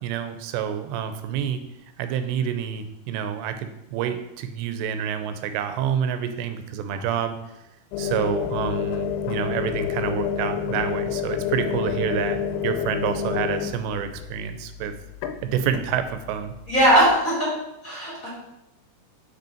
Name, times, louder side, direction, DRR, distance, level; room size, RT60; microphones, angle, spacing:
voice 1, 0.0-1.6 2.0-7.4 8.0-15.0 15.4-16.5, right 8 dB, 90° right, 9 dB, 2.8 m, -28 dB
sound 1, 7.9-17.2, left 8 dB, 80° left, 2.5 m, -29 dB
voice 2, 16.7-17.5 17.8-18.3, equal, 25° left, -8 dB, 2.6 m, -19 dB
6.0 x 5.3 x 4.3 m, 0.89 s
omnidirectional pair, 4.9 m